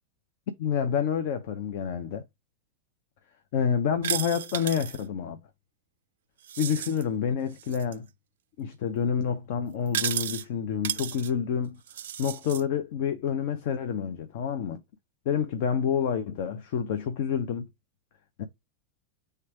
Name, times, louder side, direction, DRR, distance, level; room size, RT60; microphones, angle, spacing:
voice 1, 0.6-2.2 3.5-5.4 6.6-8.1 8.6-11.8 12.2-14.8 15.3-17.7 18.4-18.5, left 7 dB, 50° left, 0.6 m, -28 dB
sound 1, 4.0-5.0 6.4-7.0 7.6-8.0 9.9-10.4 10.8-11.3 11.9-12.6, right 10 dB, 60° right, 0.3 m, -33 dB
3.3 x 3.2 x 4.6 m
figure-of-eight pair, 90°, 0 cm